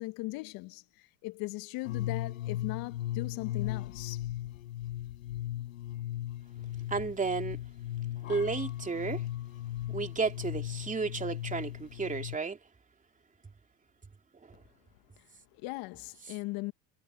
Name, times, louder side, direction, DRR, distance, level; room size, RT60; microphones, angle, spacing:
voice 1, 0.0-4.3 15.2-15.3 15.5-16.7, left 22 dB, 60° left, 1.5 m, -39 dB
sound 1, 1.9-12.4, left 13 dB, 85° left, 4.1 m, -37 dB
voice 2, 6.9-7.6 8.3-9.2 9.9-12.6 14.5-14.6, right 4 dB, 20° right, 2.9 m, -32 dB
hypercardioid pair, 80°, 40 cm